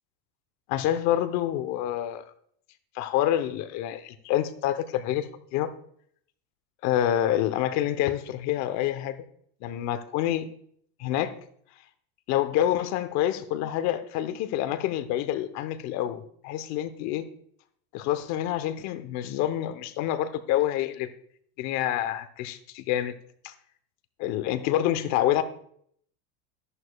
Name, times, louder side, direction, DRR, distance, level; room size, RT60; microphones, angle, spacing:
voice 1, 0.7-2.2 2.9-5.7 6.8-9.2 9.6-10.5 11.0-11.3 12.3-17.2 17.9-21.1 21.6-23.1 23.4-23.5 24.2-25.4, left 12 dB, 50° left, 11 dB, 0.9 m, -27 dB
12.5 x 11.0 x 2.3 m, 0.65 s
supercardioid pair, 135°, 35 cm